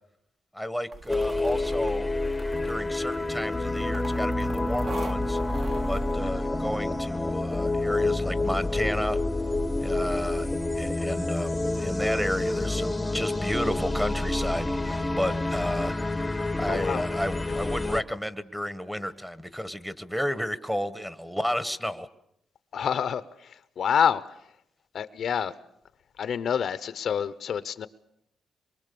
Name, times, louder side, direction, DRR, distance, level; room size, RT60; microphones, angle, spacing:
voice 1, 0.5-2.1 2.6-5.4 5.8-9.2 9.8-22.1, equal, 5° right, 12 dB, 1.3 m, -32 dB
sound 1, 0.9-6.1, right 3 dB, 50° right, 2.0 m, -43 dB
sound 2, 1.1-18.0, left 2 dB, 15° left, 1.0 m, -28 dB
voice 2, 16.7-17.0 22.7-23.2 23.8-24.2 24.9-25.5 26.2-27.9, left 8 dB, 65° left, 14 dB, 0.8 m, -27 dB
24.5 x 23.5 x 6.9 m, 0.77 s
cardioid pair, 105°, 0 cm